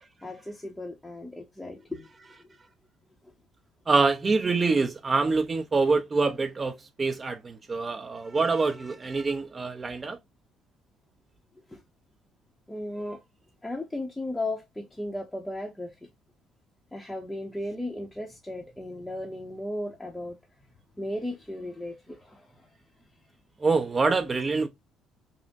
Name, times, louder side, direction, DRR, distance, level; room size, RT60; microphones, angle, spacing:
voice 1, 0.2-2.1 3.2-3.3 11.7-11.8 12.7-13.2 13.6-15.9 16.9-20.4 21.0-22.7, left 1 dB, 5° left, 0.8 m, -35 dB
voice 2, 3.9-10.2 23.6-24.7, right 4 dB, 25° right, 0.7 m, -25 dB
5.5 x 2.1 x 2.6 m
cardioid pair, 120°, 0 cm